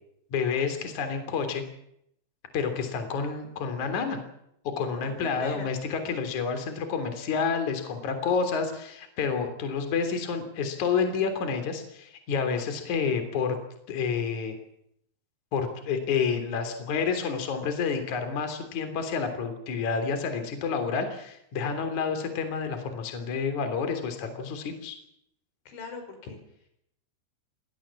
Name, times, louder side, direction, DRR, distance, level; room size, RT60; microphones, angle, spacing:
voice 1, 0.3-1.6 2.5-4.2 4.6-13.6 13.9-14.6 15.5-25.0, left 5 dB, 45° left, 7 dB, 4.2 m, -29 dB
voice 2, 4.9-5.7 25.7-26.4, left 4 dB, 85° left, 6 dB, 7.5 m, -40 dB
24.5 x 18.0 x 7.4 m, 0.73 s
omnidirectional pair, 5.3 m